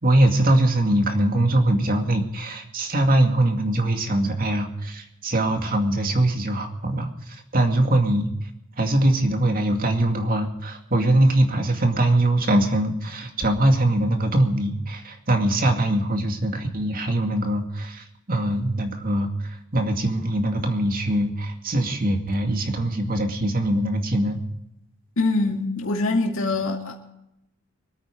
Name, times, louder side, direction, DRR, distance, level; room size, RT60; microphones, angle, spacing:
voice 1, 0.0-8.3 8.8-24.4, right 1 dB, 45° right, 4 dB, 2.3 m, -22 dB
voice 2, 25.2-27.0, left 3 dB, 65° left, 1 dB, 2.4 m, -24 dB
25.5 x 8.9 x 5.2 m, 0.82 s
head